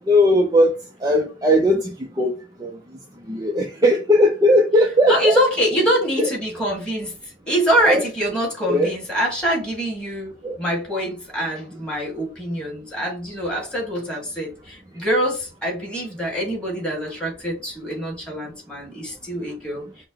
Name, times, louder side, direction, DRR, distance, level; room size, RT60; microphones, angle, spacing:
voice 1, 0.1-0.7 1.0-2.7 3.3-5.3 6.2-6.3 7.9-8.0 8.7-8.9 10.4-10.6, equal, 20° right, 0.6 m, -18 dB
voice 2, 5.1-19.9, equal, 5° left, 2.0 m, -24 dB
5.8 x 2.2 x 4.0 m
head